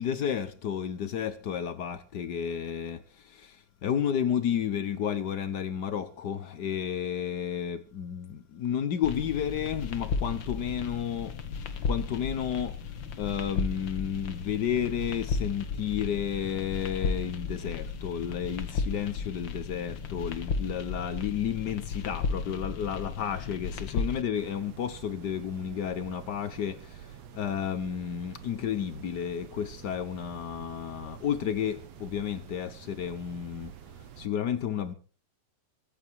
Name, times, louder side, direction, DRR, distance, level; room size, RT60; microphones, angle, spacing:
voice 1, 0.0-11.4 11.8-12.8 13.2-33.7 34.2-34.9, left 8 dB, 80° left, 0.9 m, -32 dB
sound 1, 9.0-24.2, left 4 dB, 50° left, 1.8 m, -34 dB
sound 2, 24.3-34.3, right 9 dB, 65° right, 2.4 m, -48 dB
23.5 x 9.0 x 4.6 m
omnidirectional pair, 3.4 m